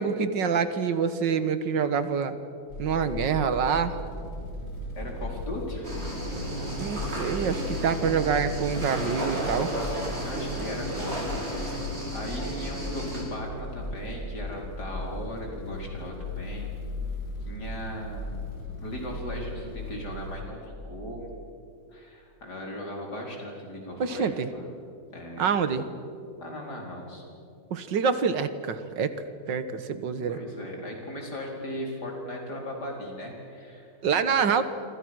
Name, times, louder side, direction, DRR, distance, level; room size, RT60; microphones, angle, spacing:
voice 1, 0.0-2.3 2.8-3.9 6.8-9.7 24.0-24.5 25.4-25.9 27.7-29.1 29.5-30.4 34.0-34.6, right 6 dB, 85° right, 11 dB, 2.0 m, -26 dB
sound 1, 2.7-20.4, left 1 dB, 90° left, 4.6 m, -37 dB
voice 2, 4.9-6.0 10.2-16.7 17.4-21.3 21.9-24.7 25.1-25.5 26.4-27.2 30.3-33.9 34.3-34.4, left 1 dB, 65° left, 0 dB, 5.4 m, -38 dB
sound 2, 5.8-13.2, right 1 dB, 35° right, 6.3 m, -33 dB
28.0 x 26.0 x 6.3 m, 2.6 s
omnidirectional pair, 1.9 m